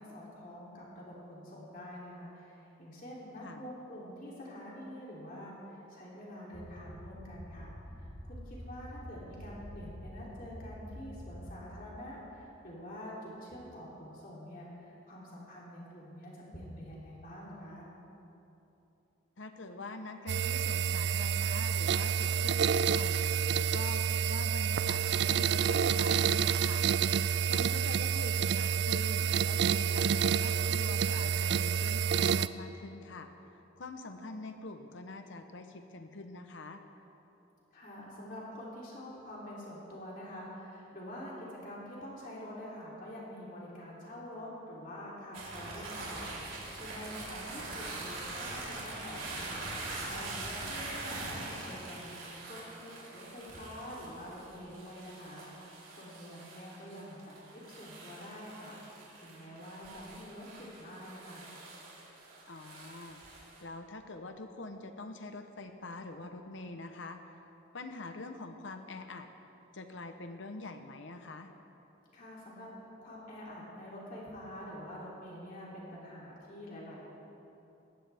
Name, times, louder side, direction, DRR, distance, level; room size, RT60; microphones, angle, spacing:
voice 1, 0.0-17.9 37.7-61.5 72.1-72.7 73.0-77.1, equal, 40° left, -6 dB, 3.1 m, -46 dB
sound 1, 6.5-11.6, equal, ahead, 3.7 m, -47 dB
voice 2, 19.4-23.3 23.7-26.8 27.5-33.3 33.8-36.8 50.7-51.0 62.5-67.2 67.7-69.3 69.7-71.5, left 2 dB, 70° left, 6 dB, 0.9 m, -45 dB
sound 2, 20.3-32.5, right 7 dB, 55° right, 0.3 m, -29 dB
sound 3, 45.3-63.6, right 2 dB, 90° right, 3.9 m, -43 dB
20.0 x 16.0 x 3.5 m, 3.0 s
head